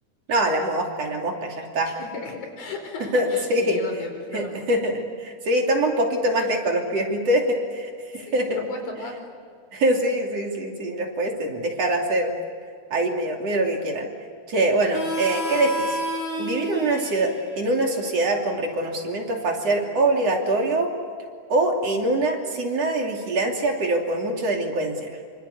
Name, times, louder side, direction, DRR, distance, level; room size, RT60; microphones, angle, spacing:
voice 1, 0.3-1.9 3.1-3.8 4.3-8.5 9.7-12.3 12.9-14.1 14.5-16.0 16.4-20.9 21.5-25.1, right 1 dB, 55° right, 1 dB, 3.9 m, -24 dB
voice 2, 1.9-4.6 8.1-9.2, left 3 dB, 75° left, 3 dB, 6.1 m, -35 dB
Harmonica, 14.9-20.2, equal, 35° left, 4.8 m, -33 dB
26.5 x 25.5 x 8.3 m, 2.1 s
omnidirectional pair, 3.5 m